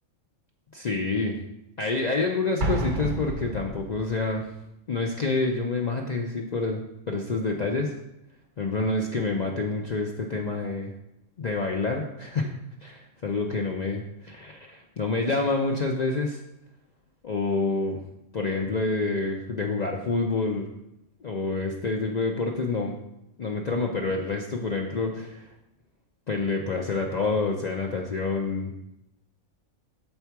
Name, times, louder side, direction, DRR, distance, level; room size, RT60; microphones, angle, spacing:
voice 1, 0.7-1.4 1.8-4.5 4.9-6.8 7.1-8.0 8.6-10.9 11.4-12.5 12.8-16.4 17.2-18.0 18.3-20.7 21.2-22.9 23.4-25.5 26.3-28.7, left 3 dB, 55° left, 1 dB, 0.5 m, -27 dB
Explosion, 2.6-4.3, right 1 dB, 45° right, 0.7 m, -30 dB
7.0 x 4.3 x 4.6 m, 0.85 s
omnidirectional pair, 1.4 m